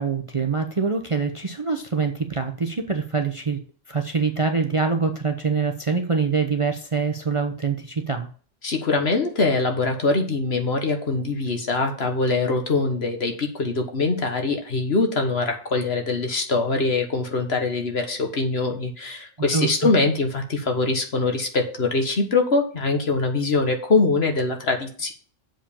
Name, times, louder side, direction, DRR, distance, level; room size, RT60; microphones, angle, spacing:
voice 1, 0.0-3.6 3.9-8.3 19.4-19.9, right 5 dB, 30° right, 5 dB, 0.8 m, -24 dB
voice 2, 8.6-25.1, left 3 dB, 55° left, 5 dB, 1.7 m, -23 dB
7.5 x 5.1 x 7.0 m, 0.43 s
omnidirectional pair, 1.3 m